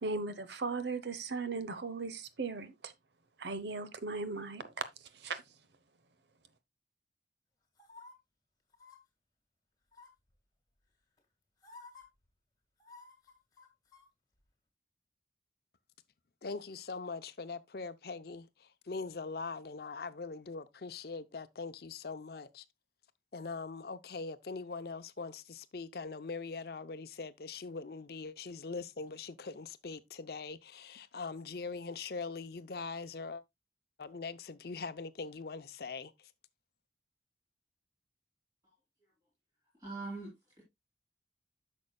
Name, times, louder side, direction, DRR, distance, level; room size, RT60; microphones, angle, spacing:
voice 1, 0.0-2.9 3.4-4.9 5.1-5.4, right 4 dB, 70° right, 0.8 m, -37 dB
sound 1, 7.8-8.1 8.7-9.0 9.9-10.3 11.2-11.3 11.6-12.0 12.8-14.1 14.4-14.5, left 3 dB, 20° left, 1.7 m, -54 dB
voice 2, 16.4-18.5 18.9-22.6 23.3-33.4 34.0-36.1, left 4 dB, 55° left, 0.6 m, -42 dB
voice 3, 39.8-40.6, right 3 dB, 20° right, 3.2 m, -42 dB
10.5 x 6.3 x 2.2 m
head